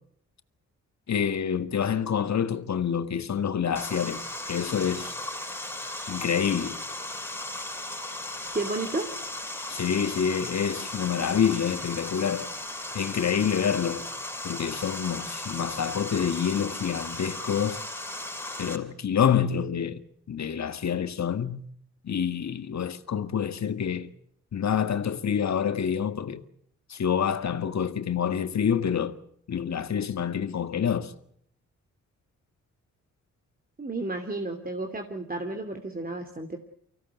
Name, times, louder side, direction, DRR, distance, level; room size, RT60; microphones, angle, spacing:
voice 1, 1.1-5.1 6.1-6.8 9.7-12.5 12.9-14.1 14.4-17.8 18.6-20.0 20.3-21.6 22.0-24.1 24.5-26.4 26.9-29.2 29.5-31.1, left 8 dB, 55° left, 1.8 m, -27 dB
Water, 3.8-18.8, left 1 dB, 5° left, 6.2 m, -36 dB
voice 2, 8.5-9.1 33.8-36.6, right 2 dB, 25° right, 3.0 m, -32 dB
24.5 x 16.5 x 8.0 m
supercardioid pair, 50°, 32 cm